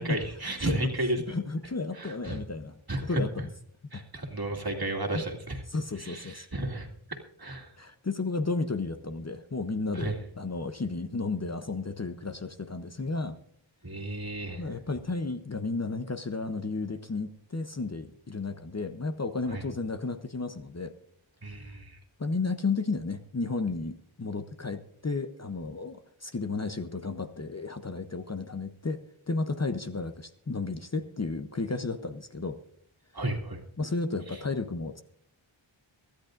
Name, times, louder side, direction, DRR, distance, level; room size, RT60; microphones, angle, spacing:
voice 1, 0.0-1.2 1.9-2.4 2.9-3.2 3.9-5.6 6.0-7.7 9.9-10.2 13.8-14.6 19.5-19.6 21.4-22.0 33.1-33.6, right 2 dB, 45° right, 2 dB, 2.3 m, -33 dB
voice 2, 1.3-3.5 3.9-4.1 5.1-5.2 5.7-6.5 7.8-13.4 14.6-20.9 21.4-21.6 22.2-29.0 29.3-32.6 33.8-35.0, left 3 dB, 30° left, 8 dB, 0.8 m, -33 dB
23.5 x 13.0 x 2.6 m, 0.63 s
wide cardioid pair, 75°, 50 cm